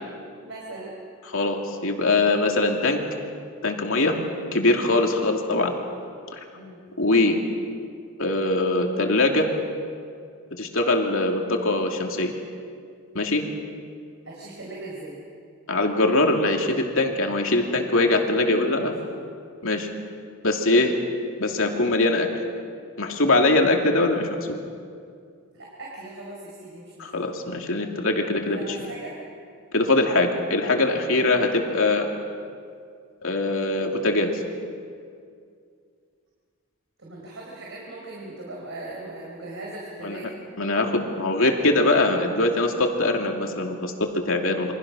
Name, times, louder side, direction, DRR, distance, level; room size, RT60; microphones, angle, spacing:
voice 1, 0.4-1.0 6.5-6.9 14.2-15.2 18.1-18.3 18.7-18.9 25.5-27.1 28.4-29.1 31.0-31.2 37.0-40.3, right 2 dB, 55° right, -3 dB, 4.9 m, -39 dB
voice 2, 1.3-3.0 3.6-4.2 4.5-5.7 7.0-7.4 8.2-9.5 10.5-12.3 13.1-13.5 15.7-18.9 19.6-19.9 20.4-20.9 21.4-22.3 23.0-24.6 27.0-28.8 29.7-32.1 33.2-34.3 40.0-40.2 40.6-44.7, left 2 dB, 65° left, 2 dB, 2.8 m, -22 dB
28.5 x 24.5 x 6.3 m, 2.3 s
head